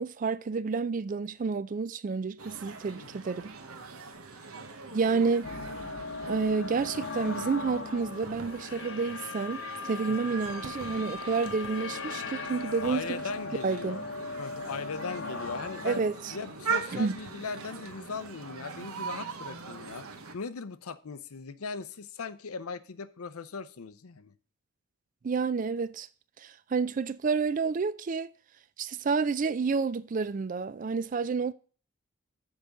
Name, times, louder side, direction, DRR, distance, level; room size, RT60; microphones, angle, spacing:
voice 1, 0.0-3.5 4.9-5.5 6.2-13.2 13.6-14.0 15.8-16.1 16.9-17.2 25.2-26.1 26.4-28.3 28.8-31.5, right 4 dB, 40° right, 0.3 m, -29 dB
sound 1, 2.4-20.3, right 5 dB, 85° right, 1.1 m, -41 dB
sound 2, 5.4-17.5, left 4 dB, 60° left, 0.8 m, -39 dB
voice 2, 12.8-14.0 14.4-16.0 16.3-20.1 20.3-24.3, left 5 dB, 90° left, 0.6 m, -39 dB
7.2 x 5.0 x 6.5 m
head